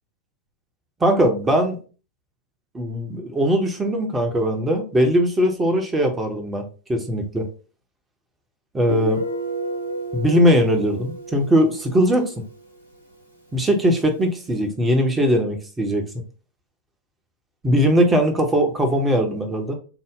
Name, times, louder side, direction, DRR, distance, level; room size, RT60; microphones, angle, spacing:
voice 1, 1.0-1.8 2.7-6.6 6.9-7.4 8.7-9.2 10.1-12.3 13.5-16.0 17.6-19.7, equal, 15° right, 4 dB, 0.8 m, -20 dB
Guitar, 8.9-12.4, right 1 dB, 90° right, 0.8 m, -30 dB
3.8 x 2.0 x 3.6 m, 0.36 s
figure-of-eight pair, 90°, 0 cm